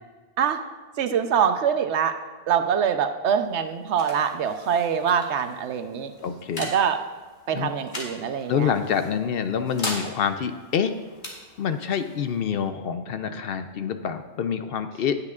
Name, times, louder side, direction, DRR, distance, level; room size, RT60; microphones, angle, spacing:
voice 1, 1.0-2.1 2.5-6.1 6.6-7.0 7.5-8.7, right 7 dB, 80° right, 8 dB, 1.0 m, -24 dB
sound 1, 3.2-14.5, left 1 dB, 40° left, 2.0 m, -41 dB
voice 2, 6.2-6.7 7.5-7.8 8.5-10.9 11.6-15.1, left 7 dB, 65° left, 9 dB, 0.7 m, -27 dB
19.0 x 6.7 x 2.4 m, 1.3 s
omnidirectional pair, 1.1 m